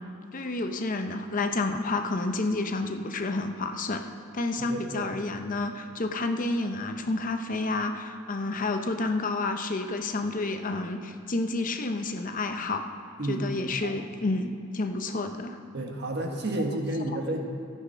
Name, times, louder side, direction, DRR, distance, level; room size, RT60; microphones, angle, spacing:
voice 1, 0.3-4.0 4.3-12.9 13.2-15.6, left 2 dB, 40° left, 6 dB, 0.7 m, -30 dB
voice 2, 4.6-5.1 13.2-13.5 13.8-14.0 15.7-17.4, right 1 dB, 55° right, 2 dB, 1.4 m, -31 dB
13.5 x 8.2 x 5.7 m, 2.7 s
head